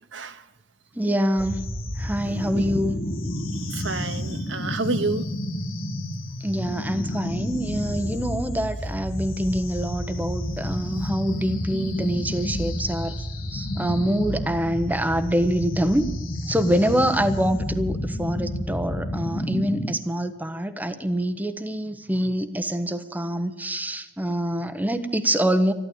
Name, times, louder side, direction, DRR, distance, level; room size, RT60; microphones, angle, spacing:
voice 1, 0.1-0.4 2.5-2.6 3.6-5.3, right 3 dB, 70° right, 11 dB, 1.0 m, -29 dB
voice 2, 1.0-1.6 2.0-3.0 6.4-13.1 13.5-16.1 16.5-25.7, equal, 10° right, 7 dB, 1.0 m, -25 dB
sound 1, 1.4-19.9, left 1 dB, 55° left, 2.2 m, -30 dB
13.0 x 12.0 x 8.6 m, 0.99 s
head